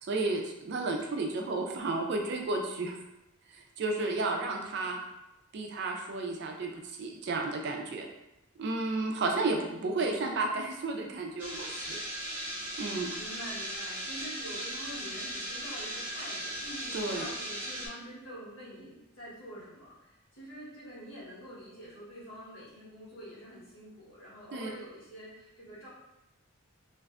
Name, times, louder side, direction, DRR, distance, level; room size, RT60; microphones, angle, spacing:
voice 1, 0.0-3.0 3.5-5.0 5.5-8.1 8.6-12.0 12.8-13.1 16.9-17.3 24.5-24.7, right 3 dB, 50° right, 2 dB, 0.3 m, -32 dB
voice 2, 4.3-4.9 9.2-9.8 13.1-25.9, equal, 80° left, -9 dB, 1.2 m, -46 dB
sound 1, 11.4-17.9, equal, 10° right, 0.6 m, -38 dB
2.5 x 2.2 x 2.3 m, 0.92 s
head